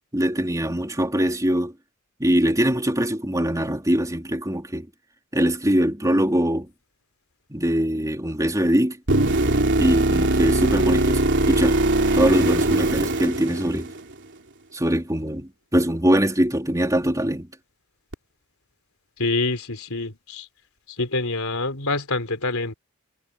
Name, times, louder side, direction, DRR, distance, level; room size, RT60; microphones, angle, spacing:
voice 1, 0.1-1.7 2.2-4.9 5.3-6.7 7.5-9.0 9.8-11.8 12.1-13.9 14.7-17.5, equal, 15° right, 3.6 m, -22 dB
sound 1, 9.1-14.1 18.1-18.2, right 2 dB, 55° right, 3.3 m, -21 dB
voice 2, 19.2-20.5 20.9-22.7, left 3 dB, 75° left, 4.0 m, -26 dB
head